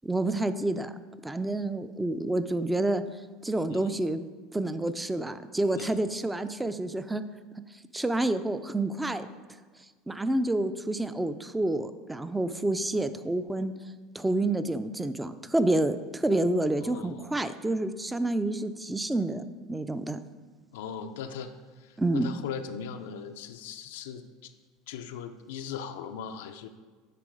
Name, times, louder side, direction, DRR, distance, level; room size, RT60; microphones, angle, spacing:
voice 1, 0.0-0.9 1.2-3.0 3.4-4.2 4.5-7.2 7.9-9.3 10.1-13.7 14.1-20.2 22.0-22.4, right 2 dB, 10° right, 11 dB, 0.4 m, -28 dB
voice 2, 16.8-17.3 20.7-24.5 24.9-26.7, left 7 dB, 90° left, 6 dB, 0.4 m, -39 dB
10.0 x 3.8 x 4.8 m, 1.4 s
supercardioid pair, 130°, 0 cm